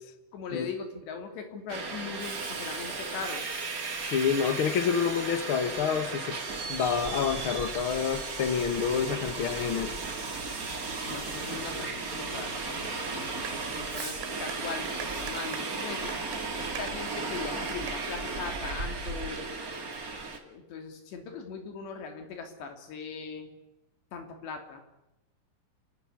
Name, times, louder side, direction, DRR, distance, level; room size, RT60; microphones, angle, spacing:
voice 1, 0.3-3.6 11.0-16.2 16.6-19.5 20.4-23.5 24.1-24.8, left 5 dB, 80° left, 5.0 m, -40 dB
Subway metro underground, 1.7-20.4, right 3 dB, 30° right, 1.9 m, -35 dB
voice 2, 4.0-6.4 6.7-9.9, left 7 dB, 60° left, 1.3 m, -28 dB
sound 1, 13.4-19.4, right 9 dB, 90° right, 4.1 m, -45 dB
30.0 x 12.5 x 9.8 m
omnidirectional pair, 4.9 m